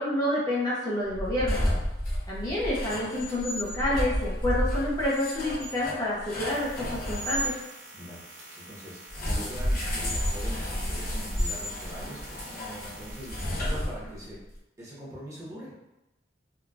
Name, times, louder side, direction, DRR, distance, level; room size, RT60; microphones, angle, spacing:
voice 1, 0.0-1.6 2.3-7.5, left 1 dB, 20° left, -7 dB, 0.5 m, -28 dB
sound 1, 1.1-7.5 9.1-14.3, equal, 50° left, 0.8 m, -31 dB
sound 2, 6.5-13.5, right 2 dB, 75° right, 0.9 m, -47 dB
voice 2, 8.6-14.4 14.8-15.7, equal, 15° right, -7 dB, 0.9 m, -42 dB
3.8 x 2.2 x 2.3 m, 0.94 s
head